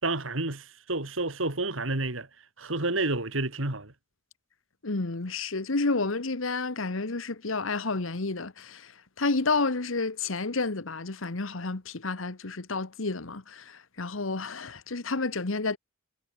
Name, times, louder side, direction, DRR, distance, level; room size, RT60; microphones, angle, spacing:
voice 1, 0.0-2.3 2.6-3.9, right 2 dB, 75° right, 3.3 m, -30 dB
voice 2, 4.8-8.9 9.2-15.8, left 3 dB, 85° left, 1.4 m, -30 dB
head